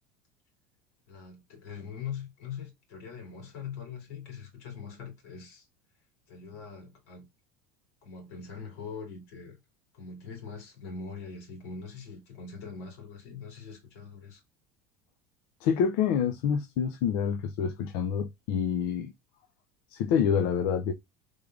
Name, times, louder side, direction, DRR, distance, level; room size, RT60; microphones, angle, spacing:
voice 1, 1.1-5.7 6.3-7.3 8.0-9.6 9.9-14.4, left 6 dB, 80° left, 2.6 m, -42 dB
voice 2, 15.6-19.1 19.9-20.9, left 7 dB, 65° left, 0.5 m, -27 dB
3.6 x 3.3 x 2.3 m
cardioid pair, 155°, 8 cm